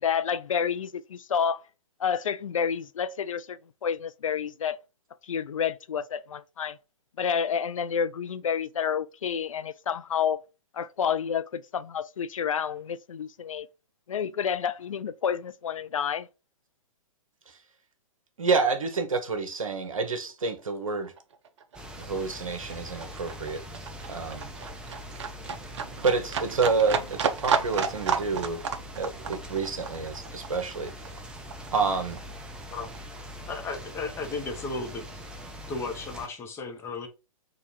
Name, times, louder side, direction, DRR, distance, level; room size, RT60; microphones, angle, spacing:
voice 1, 0.0-1.6 2.0-4.8 5.2-6.8 7.2-10.4 10.7-13.7 14.1-16.3, left 7 dB, 70° left, 0.4 m, -29 dB
voice 2, 18.4-21.1 22.0-23.6 24.1-24.5 26.0-28.6 29.0-31.2 31.7-32.2, right 4 dB, 70° right, 0.9 m, -28 dB
Livestock farm animals working animals, 20.5-20.6 20.9-31.9 32.2-33.2 33.5-33.6, right 6 dB, 55° right, 0.6 m, -32 dB
sound 1, 21.7-36.3, equal, 5° right, 0.4 m, -42 dB
voice 3, 33.5-35.0 35.7-37.1, left 3 dB, 15° left, 0.8 m, -34 dB
3.8 x 2.4 x 4.4 m
figure-of-eight pair, 120°, 18 cm